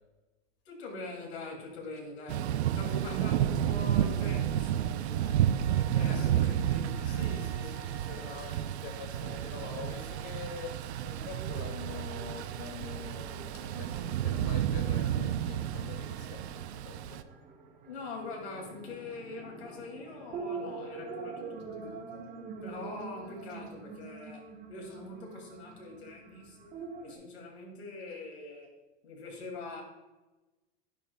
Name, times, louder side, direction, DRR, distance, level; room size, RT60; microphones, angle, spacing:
voice 1, 0.7-5.4 5.8-7.3 7.6-7.8 8.2-8.6 17.8-22.3 22.6-26.7 27.0-28.7 29.0-29.8, left 3 dB, 85° left, 1 dB, 2.3 m, -43 dB
Thunder / Rain, 2.3-17.2, right 10 dB, 90° right, 0.5 m, -31 dB
voice 2, 6.0-6.6 6.9-17.2, left 6 dB, 45° left, 2 dB, 2.1 m, -45 dB
sound 1, 9.1-27.2, right 4 dB, 25° right, 1.2 m, -46 dB
9.8 x 7.0 x 2.2 m, 1.1 s
supercardioid pair, 130°, 32 cm